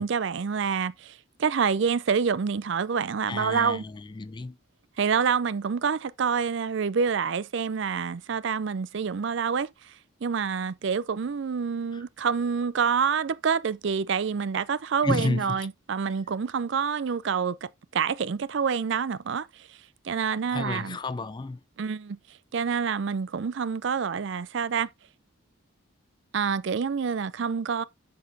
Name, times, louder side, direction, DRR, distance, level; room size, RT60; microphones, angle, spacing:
voice 1, 0.0-3.8 5.0-9.9 10.2-19.7 20.0-21.0 21.8-22.2 22.5-24.9 26.3-27.8, right 6 dB, 60° right, 0.4 m, -27 dB
voice 2, 3.3-4.6 11.9-12.0 15.0-15.6 20.5-21.6, left 3 dB, 20° left, 0.3 m, -31 dB
7.6 x 6.0 x 2.7 m
head